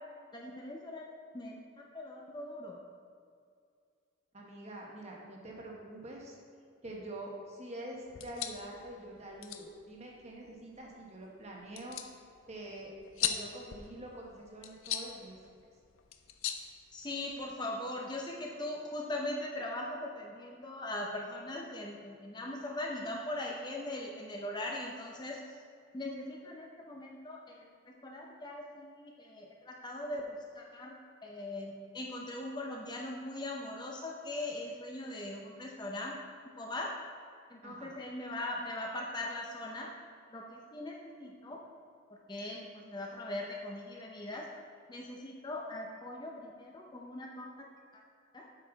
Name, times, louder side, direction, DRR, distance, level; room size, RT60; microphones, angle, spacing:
voice 1, 0.3-1.1 1.3-1.6 1.9-2.8 16.9-25.4 25.9-36.2 36.6-36.9 37.5-39.9 40.3-41.6 42.1-44.5 44.9-47.7 47.9-48.0 48.3-48.5, left 1 dB, 20° left, 0 dB, 0.6 m, -40 dB
voice 2, 4.3-6.4 6.8-12.0 12.5-12.9 13.2-15.3 37.6-37.9, right 1 dB, 30° right, -2 dB, 1.2 m, -45 dB
sound 1, 8.1-17.5, left 9 dB, 80° left, 0.5 m, -41 dB
7.9 x 6.3 x 4.0 m, 2.3 s
head